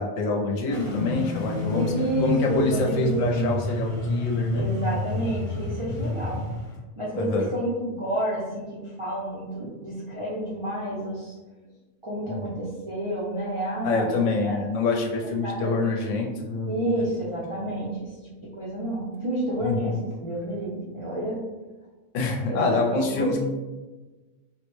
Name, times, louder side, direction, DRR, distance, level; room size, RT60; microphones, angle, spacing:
voice 1, 0.0-1.9 2.2-4.6 7.1-7.5 12.3-12.5 13.8-17.1 19.6-20.0 22.1-23.5, left 3 dB, 75° left, 1 dB, 0.9 m, -26 dB
sound 1, 0.7-6.8, left 1 dB, 30° left, 0.7 m, -29 dB
voice 2, 1.7-3.5 4.5-6.4 7.0-11.3 12.0-14.5 15.4-15.8 16.7-18.1 18.4-19.9 20.2-21.4 22.5-23.3, right 1 dB, 45° right, -8 dB, 0.3 m, -30 dB
3.6 x 2.1 x 3.0 m, 1.2 s
omnidirectional pair, 1.4 m